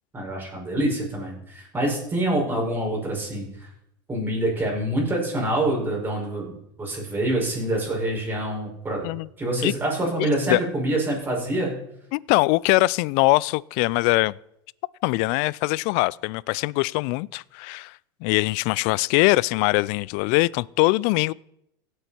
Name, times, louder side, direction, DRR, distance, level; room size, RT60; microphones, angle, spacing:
voice 1, 0.1-3.7 4.1-6.5 6.8-9.1 9.4-11.8, right 1 dB, 15° right, 5.8 m, -26 dB
voice 2, 10.0-10.6 12.1-14.3 15.0-17.9 18.2-21.3, left 22 dB, 60° left, 0.4 m, -22 dB
16.5 x 8.1 x 4.4 m
supercardioid pair, 110°, 12 cm